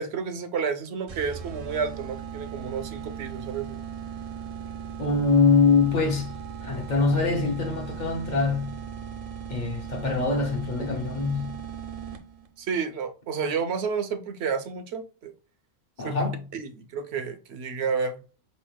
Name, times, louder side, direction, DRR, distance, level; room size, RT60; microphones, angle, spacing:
voice 1, 0.0-3.8 12.6-15.3 16.0-16.2 16.5-18.2, right 5 dB, 75° right, 0.9 m, -30 dB
sound 1, 1.1-12.5, right 7 dB, 50° right, 0.4 m, -38 dB
voice 2, 5.0-6.3 6.6-8.7 9.5-11.5 16.0-16.4, left 4 dB, 50° left, 0.8 m, -23 dB
4.7 x 3.2 x 3.2 m
omnidirectional pair, 1.1 m